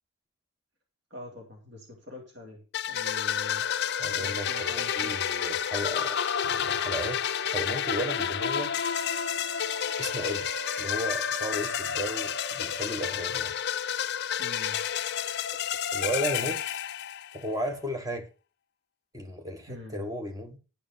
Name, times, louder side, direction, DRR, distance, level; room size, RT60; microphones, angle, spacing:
voice 1, 1.1-3.6 4.1-5.1 14.4-14.8 19.7-20.0, left 2 dB, 55° right, 2.8 m, -44 dB
sound 1, 2.7-17.5, left 9 dB, 50° left, 0.4 m, -30 dB
sound 2, 3.6-13.5, right 4 dB, 70° right, 0.5 m, -43 dB
voice 2, 4.0-6.2 6.4-8.7 10.0-10.5 10.8-13.5 15.5-15.6 15.9-16.6 17.3-18.3 19.1-20.6, equal, 15° right, 1.3 m, -34 dB
11.5 x 5.1 x 6.4 m
head